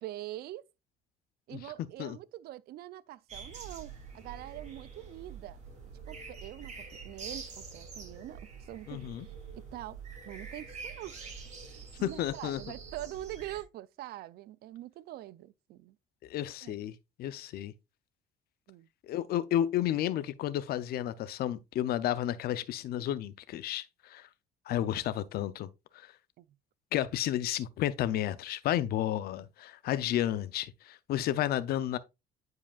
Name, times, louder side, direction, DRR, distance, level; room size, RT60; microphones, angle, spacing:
voice 1, 0.0-0.6 1.5-5.6 6.1-9.1 9.5-10.0 10.3-11.1 11.7-16.0 16.6-16.8 18.7-18.9 26.4-26.5, right 14 dB, 65° right, 0.4 m, -44 dB
sound 1, 3.3-13.6, right 5 dB, 45° right, 2.6 m, -46 dB
voice 2, 8.9-9.3 12.0-12.6 16.2-17.7 19.1-24.3 24.7-26.1 26.9-32.0, left 12 dB, 65° left, 0.6 m, -32 dB
9.4 x 4.8 x 2.4 m
cardioid pair, 110°, 17 cm